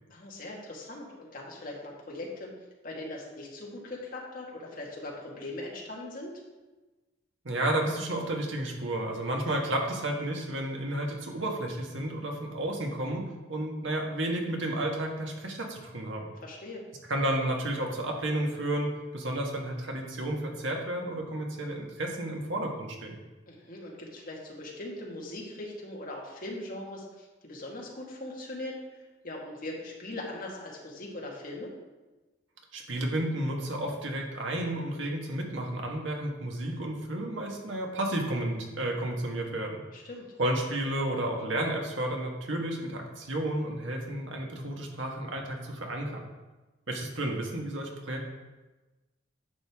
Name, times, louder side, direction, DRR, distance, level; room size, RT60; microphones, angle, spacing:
voice 1, 0.1-2.5 2.8-6.3 16.4-16.8 23.5-31.7 39.9-40.3, left 1 dB, 50° left, -2 dB, 1.8 m, -40 dB
voice 2, 7.4-16.3 17.1-23.2 32.7-39.8 40.4-46.2 46.9-48.2, right 1 dB, 80° right, 1 dB, 1.5 m, -32 dB
10.5 x 6.7 x 3.6 m, 1.2 s
head